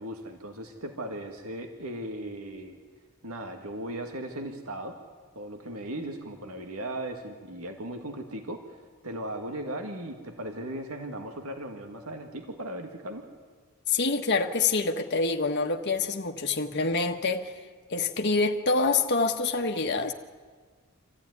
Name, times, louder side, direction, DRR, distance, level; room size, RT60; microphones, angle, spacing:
voice 1, 0.0-2.8 3.2-5.0 5.4-8.8 9.0-13.3, right 1 dB, 80° right, 2.0 m, -37 dB
voice 2, 13.9-17.5 17.9-20.1, left 3 dB, 50° left, 1.3 m, -26 dB
25.5 x 15.0 x 9.6 m
head